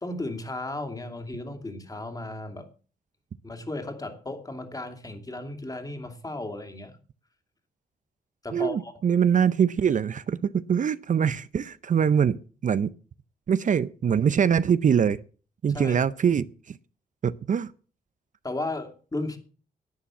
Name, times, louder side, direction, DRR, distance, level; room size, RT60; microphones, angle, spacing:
voice 1, 0.0-2.7 3.4-7.0 8.4-8.9 15.7-16.0 18.4-19.4, left 2 dB, 25° left, 2.6 m, -35 dB
voice 2, 8.5-12.9 13.5-15.2 15.6-16.8 17.2-17.7, right 7 dB, 55° right, 0.6 m, -23 dB
11.5 x 8.7 x 7.2 m
cardioid pair, 90°, 16 cm